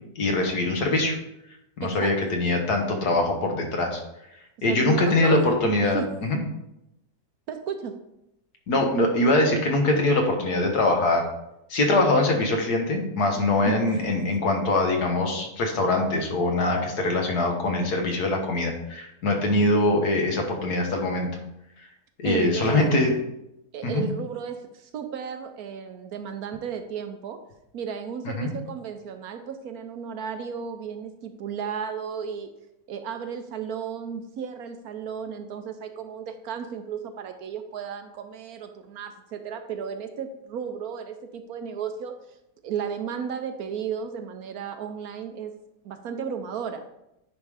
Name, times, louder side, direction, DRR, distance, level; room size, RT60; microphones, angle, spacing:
voice 1, 0.2-1.2 1.8-4.0 4.6-6.4 8.7-11.3 11.7-21.3 22.2-23.1 23.8-24.0 28.3-28.5, left 2 dB, 70° left, 2 dB, 1.7 m, -23 dB
voice 2, 1.8-2.1 4.7-5.4 5.9-6.1 7.5-8.0 13.7-14.0 22.2-23.1 23.7-27.4 27.7-32.5 32.9-42.2 42.6-45.5 45.8-46.8, right 7 dB, 70° right, 7 dB, 1.0 m, -34 dB
9.6 x 3.6 x 4.8 m, 0.86 s
omnidirectional pair, 1.8 m